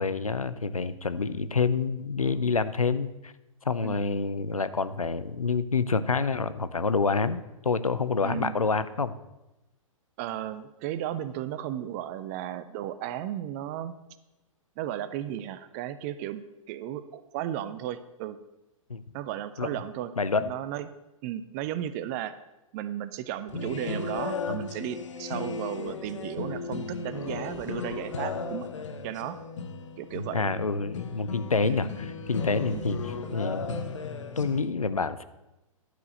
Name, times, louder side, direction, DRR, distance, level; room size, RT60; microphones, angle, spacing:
voice 1, 0.0-3.3 3.6-9.2 18.9-19.0 19.6-19.7 20.2-20.5 30.3-33.9 34.4-35.2, left 4 dB, 80° left, 13 dB, 0.6 m, -27 dB
voice 2, 8.2-8.6 10.2-14.0 14.8-16.4 16.7-18.4 19.1-20.1 20.4-20.9 21.2-22.4 22.7-28.7 29.0-29.4 30.0-30.4 31.6-31.8 32.7-32.9, right 11 dB, 30° right, 14 dB, 0.4 m, -34 dB
sound 1, 23.5-34.6, left 4 dB, 60° left, 0.9 m, -35 dB
11.5 x 4.7 x 6.4 m, 0.98 s
figure-of-eight pair, 110°, 18 cm